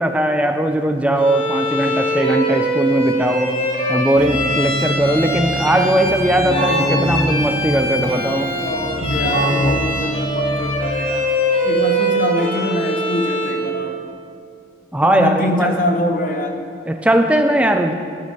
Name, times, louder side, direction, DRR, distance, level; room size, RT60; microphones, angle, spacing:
voice 1, 0.0-3.5 3.9-8.5 14.9-15.7 16.9-17.9, right 1 dB, 5° right, 6 dB, 0.4 m, -18 dB
Bowed string instrument, 1.2-13.7, equal, 30° left, 1.3 m, -23 dB
Keyboard (musical), 4.1-11.0, equal, 90° right, 1.6 m, -24 dB
voice 2, 8.6-11.3 11.6-13.9 15.0-16.5, left 1 dB, 45° left, 4 dB, 0.7 m, -23 dB
11.5 x 5.0 x 4.1 m, 2.4 s
head